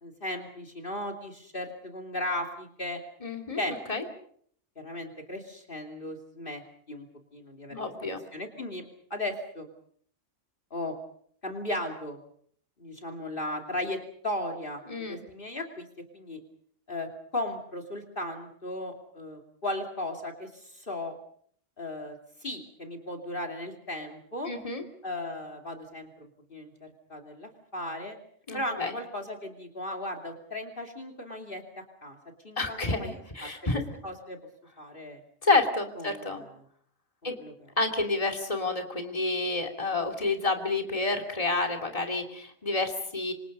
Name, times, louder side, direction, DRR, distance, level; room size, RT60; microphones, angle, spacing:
voice 1, 0.0-3.0 3.6-3.8 4.8-6.6 6.9-7.1 7.3-7.9 8.3-8.8 9.1-9.7 10.7-11.0 11.4-12.2 12.8-15.9 16.1-16.4 16.9-21.1 21.8-24.5 25.0-28.2 28.5-31.6 32.0-32.2 32.4-33.5 34.0-34.4 34.8-35.2 36.0-36.5 37.4-37.5, left 1 dB, 40° left, 6 dB, 3.0 m, -36 dB
voice 2, 3.2-4.0 7.7-8.2 14.9-15.2 24.4-24.8 28.5-28.9 32.6-33.8 35.4-36.4 37.2-37.4 37.8-43.3, left 3 dB, 25° left, 3 dB, 3.0 m, -29 dB
27.0 x 26.0 x 5.4 m, 0.62 s
omnidirectional pair, 1.3 m